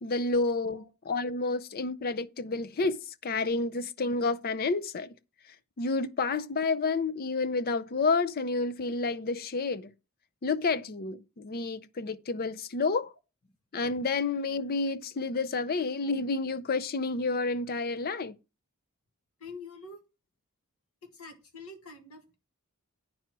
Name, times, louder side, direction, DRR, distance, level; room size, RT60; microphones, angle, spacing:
voice 1, 0.0-3.0 3.2-5.1 5.8-9.9 10.4-13.1 13.7-18.4, left 3 dB, 45° left, 0.5 m, -30 dB
voice 2, 19.4-20.0 21.1-22.4, left 3 dB, 70° left, 2.0 m, -45 dB
9.4 x 4.6 x 6.0 m
head